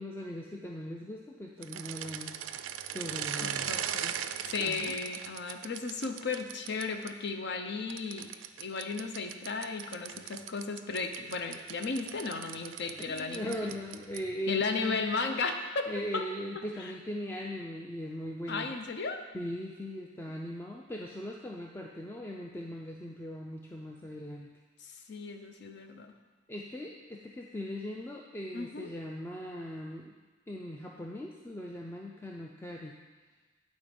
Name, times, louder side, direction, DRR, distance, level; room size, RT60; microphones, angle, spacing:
voice 1, 0.0-2.4 2.9-3.7 4.6-4.9 13.0-15.0 15.9-18.7 19.3-24.5 26.5-30.1 30.5-33.0, equal, 10° left, 0 dB, 0.4 m, -39 dB
sound 1, 1.6-7.1 7.9-14.4, right 9 dB, 80° right, 0.4 m, -39 dB
voice 2, 3.4-4.2 4.4-8.3 8.6-13.7 14.5-16.2 16.6-16.9 18.5-19.3 24.8-26.1 28.5-28.9, left 4 dB, 60° left, 6 dB, 0.6 m, -35 dB
8.7 x 4.1 x 5.1 m, 1.3 s
head